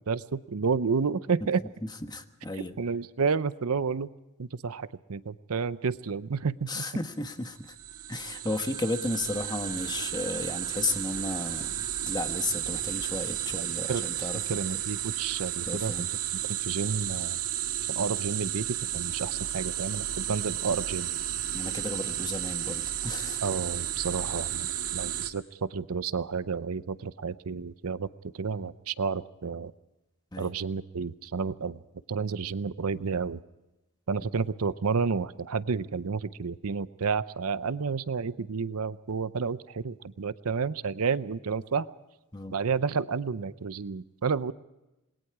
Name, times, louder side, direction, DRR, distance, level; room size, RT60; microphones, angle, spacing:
voice 1, 0.1-1.6 2.5-4.1 4.4-6.8 13.9-16.1 16.6-17.4 17.9-21.1 23.4-24.7 24.9-28.1 28.3-29.7 30.4-31.8 32.1-33.4 34.1-41.9 42.5-44.5, right 5 dB, 70° right, 15 dB, 0.6 m, -30 dB
voice 2, 2.1-2.8 6.7-7.7 8.1-11.7 12.0-14.4 15.7-16.0 21.5-23.4 30.3-30.5 42.3-42.5, left 2 dB, 20° left, 7 dB, 1.3 m, -33 dB
sound 1, 7.6-25.3, right 11 dB, 85° right, 1.7 m, -33 dB
27.5 x 20.5 x 4.8 m, 0.98 s
head